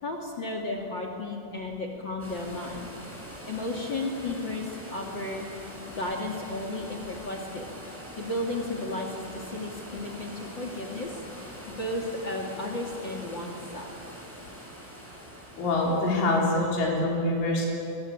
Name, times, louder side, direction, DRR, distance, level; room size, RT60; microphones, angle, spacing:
voice 1, 0.0-3.0 3.4-5.5 5.9-7.7 8.2-11.2 11.7-13.9, left 2 dB, 35° left, 2 dB, 2.0 m, -33 dB
sound 1, 2.2-16.4, equal, 5° right, 6.0 m, -44 dB
voice 2, 15.6-17.7, left 2 dB, 75° left, -2 dB, 6.1 m, -25 dB
26.0 x 23.0 x 8.7 m, 2.8 s
omnidirectional pair, 5.6 m